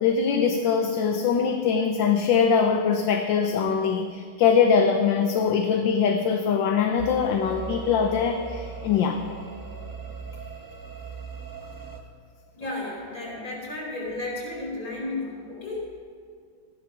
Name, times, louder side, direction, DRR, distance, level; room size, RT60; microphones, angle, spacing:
voice 1, 0.0-9.2, left 6 dB, 75° left, 4 dB, 1.5 m, -22 dB
sound 1, 7.0-12.0, right 4 dB, 15° right, 0.9 m, -39 dB
voice 2, 12.6-16.0, left 2 dB, 45° left, -3 dB, 4.9 m, -33 dB
14.5 x 11.5 x 6.0 m, 2.1 s
omnidirectional pair, 2.1 m